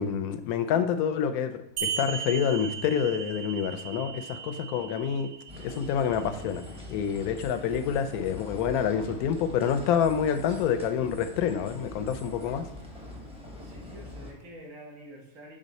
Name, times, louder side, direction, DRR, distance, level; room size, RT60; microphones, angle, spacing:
voice 1, 0.0-5.3 5.6-6.6 6.9-12.6, left 8 dB, 80° left, 9 dB, 1.1 m, -27 dB
sound 1, 1.8-6.8, right 7 dB, 85° right, 1.2 m, -37 dB
sound 2, 5.5-14.3, left 1 dB, 5° right, 0.7 m, -43 dB
voice 2, 13.6-15.6, equal, 60° right, -1 dB, 1.6 m, -47 dB
6.4 x 3.7 x 4.0 m, 0.81 s
omnidirectional pair, 1.5 m